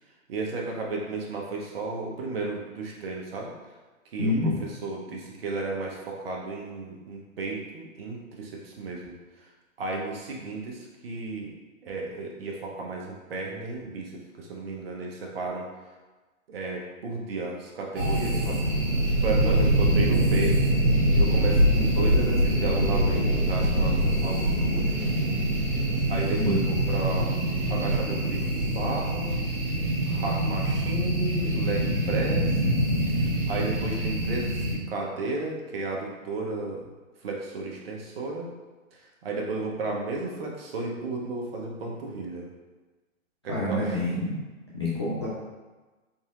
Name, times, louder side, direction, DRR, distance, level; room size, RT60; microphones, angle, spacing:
voice 1, 0.3-3.5 4.1-4.5 4.8-9.5 9.8-11.5 11.8-15.7 16.5-18.6 19.2-20.6 21.1-25.1 26.1-27.4 27.7-29.3 30.1-32.6 33.1-36.8 37.2-38.5 39.2-42.5 43.4-44.0, right 3 dB, 45° right, -1 dB, 0.8 m, -33 dB
voice 2, 4.2-4.6 26.4-26.7 43.5-44.4 44.7-45.3, left 1 dB, 20° left, -10 dB, 0.3 m, -27 dB
sound 1, 17.9-34.7, right 1 dB, 60° right, 1.4 m, -24 dB
4.1 x 3.9 x 2.4 m, 1.2 s
hypercardioid pair, 140°, 41 cm